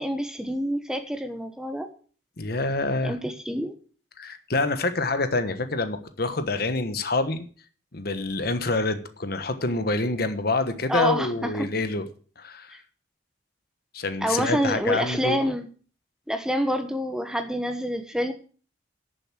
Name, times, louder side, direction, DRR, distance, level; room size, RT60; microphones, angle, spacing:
voice 1, 0.0-1.9 3.0-3.7 10.9-11.7 14.2-15.6 16.3-18.3, equal, 5° right, 8 dB, 1.1 m, -27 dB
voice 2, 2.4-3.2 4.2-7.5 7.9-12.1 12.4-12.8 13.9-15.4, left 2 dB, 55° left, 10 dB, 1.2 m, -27 dB
11.0 x 7.0 x 7.4 m, 0.41 s
head